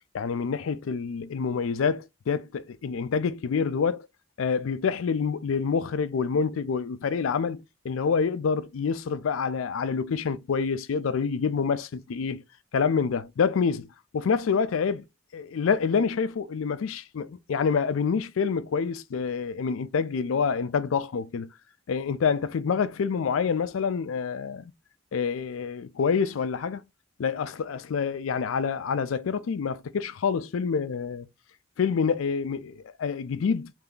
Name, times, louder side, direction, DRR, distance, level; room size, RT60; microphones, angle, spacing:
voice 1, 0.1-4.1 4.4-12.4 12.7-13.9 14.1-15.0 15.3-21.5 21.9-24.7 25.1-26.8 27.2-31.3 31.8-33.7, left 6 dB, 90° left, 0.4 m, -27 dB
3.3 x 2.6 x 3.8 m
head